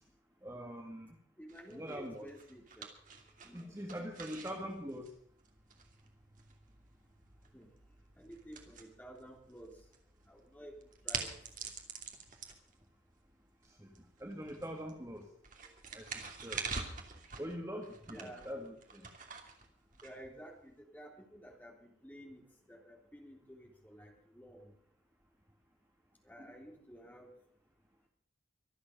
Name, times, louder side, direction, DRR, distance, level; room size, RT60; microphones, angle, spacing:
voice 1, 0.4-1.1 1.7-2.3 3.5-5.1 13.8-13.9 14.2-15.3 15.9-16.6 17.4-19.1 26.4-26.5, equal, 15° right, 2 dB, 1.7 m, -43 dB
voice 2, 1.4-2.9 3.4-3.7 4.1-4.4 7.5-7.7 8.2-9.8 10.3-10.8 11.0-11.3 15.6-15.7 18.1-18.5 20.0-24.7 26.2-27.3, equal, 10° left, 1 dB, 3.4 m, -52 dB
sound 1, 1.5-20.7, right 5 dB, 40° right, 2.7 m, -47 dB
25.0 x 8.4 x 5.2 m, 0.67 s
head